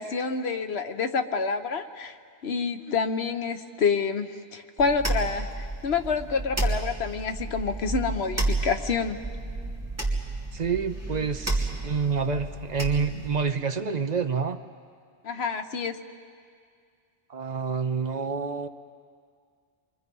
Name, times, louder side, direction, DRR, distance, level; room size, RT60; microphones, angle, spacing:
voice 1, 0.0-2.2 2.4-9.2 15.2-16.0, left 5 dB, 80° left, 8 dB, 1.2 m, -28 dB
sound 1, 4.8-13.4, right 2 dB, 15° right, 2.4 m, -31 dB
voice 2, 10.5-14.6 17.3-18.7, right 5 dB, 45° right, 9 dB, 0.8 m, -28 dB
27.5 x 23.5 x 5.4 m, 2.2 s
omnidirectional pair, 1.1 m